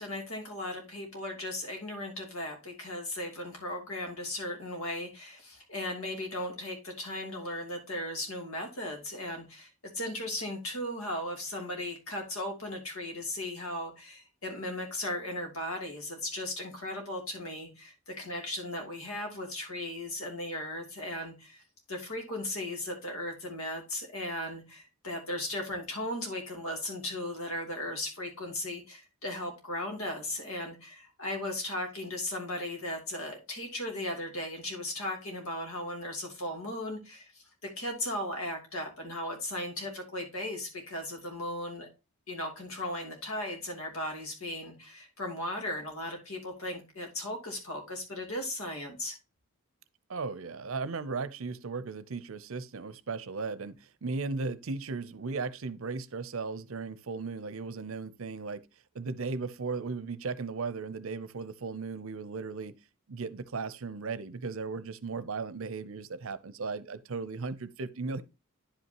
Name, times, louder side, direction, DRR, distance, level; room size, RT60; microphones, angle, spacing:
voice 1, 0.0-21.6 21.9-41.9 42.3-49.2, left 1 dB, 70° left, 2.8 m, -37 dB
voice 2, 50.1-58.6 58.9-62.8 63.1-68.2, right 4 dB, 65° right, 0.6 m, -36 dB
10.0 x 5.6 x 2.9 m
head